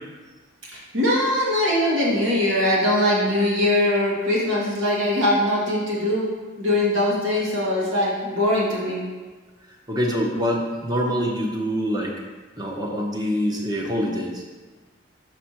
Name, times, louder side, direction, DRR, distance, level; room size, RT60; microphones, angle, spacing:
voice 1, 0.7-6.2 6.6-9.0, left 1 dB, 75° right, -5 dB, 2.0 m, -21 dB
voice 2, 9.9-12.1 12.6-14.4, equal, 20° right, -1 dB, 0.8 m, -25 dB
6.6 x 5.0 x 4.4 m, 1.3 s
head